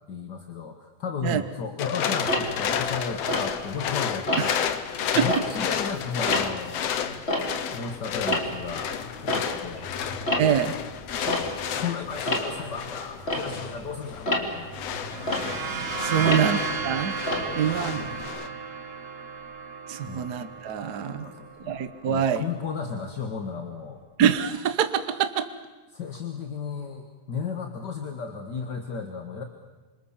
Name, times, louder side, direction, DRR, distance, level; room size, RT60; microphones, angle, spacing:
voice 1, 0.1-4.6 4.9-6.9 7.7-8.9 9.2-9.9 10.4-10.6 11.2-14.8 16.1-16.8 17.5-17.7 20.0-20.3 21.0-21.8 22.0-24.0 25.9-29.4, left 5 dB, 40° left, 5 dB, 1.7 m, -34 dB
sound 1, 1.8-18.5, left 8 dB, 65° left, 2.0 m, -32 dB
Tick-tock, 2.3-3.9 4.3-4.7 5.1-18.2, left 1 dB, 20° left, 3.3 m, -31 dB
voice 2, 10.4-10.7 16.0-16.6 16.8-17.1 17.5-18.1 19.9-21.3 21.7-22.4 24.2-25.5, right 8 dB, 75° right, 10 dB, 0.9 m, -24 dB
sound 2, 14.9-22.5, right 5 dB, 45° right, 1.0 m, -34 dB
28.0 x 26.0 x 7.3 m, 1.3 s
omnidirectional pair, 3.6 m